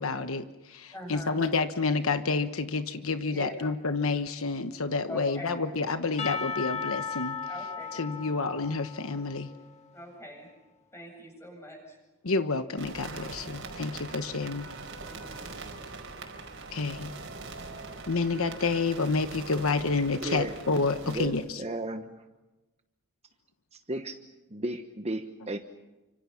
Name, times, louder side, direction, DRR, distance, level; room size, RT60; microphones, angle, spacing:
voice 1, 0.0-7.4 7.9-9.5 12.2-14.7 16.7-17.1 18.1-21.6, left 4 dB, 65° left, 9 dB, 1.1 m, -29 dB
voice 2, 0.9-1.4 3.3-3.7 5.1-5.6 7.5-7.9 9.9-10.5 10.9-12.0 13.9-14.3 15.0-15.5, equal, 10° left, 2 dB, 7.9 m, -43 dB
Percussion / Church bell, 6.2-10.0, left 6 dB, 30° left, 1.6 m, -36 dB
sound 1, 12.8-21.3, right 3 dB, 60° right, 5.0 m, -42 dB
voice 3, 20.2-20.5 21.1-22.1 23.7-24.2 24.5-25.6, right 1 dB, 30° right, 6 dB, 1.2 m, -34 dB
30.0 x 26.0 x 5.9 m, 1.1 s
head